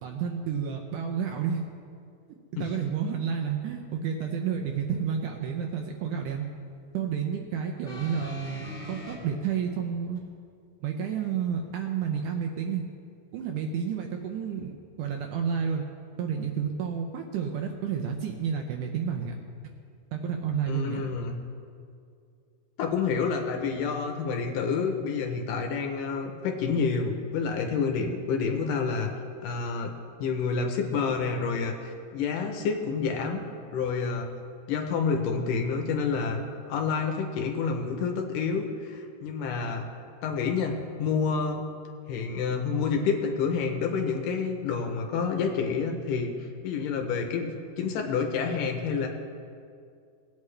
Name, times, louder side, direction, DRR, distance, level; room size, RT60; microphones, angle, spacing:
voice 1, 0.0-1.7 2.5-6.5 6.9-10.2 10.8-12.8 13.3-15.9 16.2-19.4 20.1-21.0, right 7 dB, 75° right, 2 dB, 1.9 m, -30 dB
sound 1, 7.9-9.2 10.2-10.3, left 1 dB, 20° left, 2.2 m, -41 dB
voice 2, 20.7-21.4 22.8-29.1 29.4-29.9 30.2-33.5 33.7-34.3 34.7-36.4 36.7-39.9 40.2-41.6 42.1-49.1, left 5 dB, 75° left, 3 dB, 2.2 m, -28 dB
19.0 x 8.3 x 3.3 m, 2.4 s
omnidirectional pair, 4.2 m